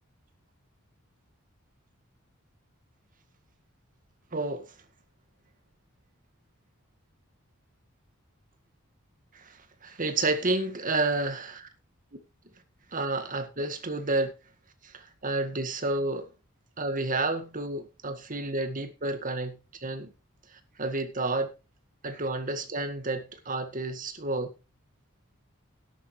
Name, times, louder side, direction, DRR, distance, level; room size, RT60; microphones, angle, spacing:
voice 1, 4.3-4.7 9.3-11.6 12.9-14.3 14.8-16.3 16.8-20.1 20.5-21.5 22.0-24.5, right 2 dB, 40° right, 1.8 m, -30 dB
13.0 x 11.0 x 3.3 m
head